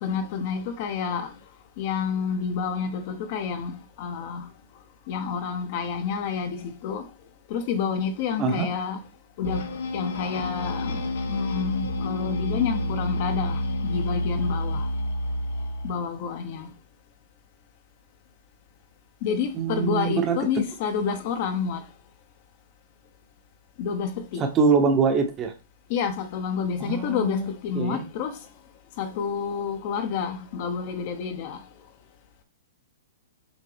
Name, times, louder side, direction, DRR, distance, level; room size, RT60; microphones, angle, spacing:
voice 1, 0.0-1.3 1.8-3.7 4.0-4.5 5.1-7.1 7.5-9.1 9.4-14.9 15.8-16.7 19.2-21.8 23.8-24.4 25.9-28.5 29.0-31.6, left 6 dB, 40° left, 1.0 m, -29 dB
sound 1, 9.4-16.0, left 1 dB, 75° left, 1.3 m, -29 dB
voice 2, 19.5-20.4 24.4-25.5 26.8-28.0, right 5 dB, 20° right, 1.0 m, -24 dB
7.2 x 3.8 x 3.4 m
hypercardioid pair, 150°, 0 cm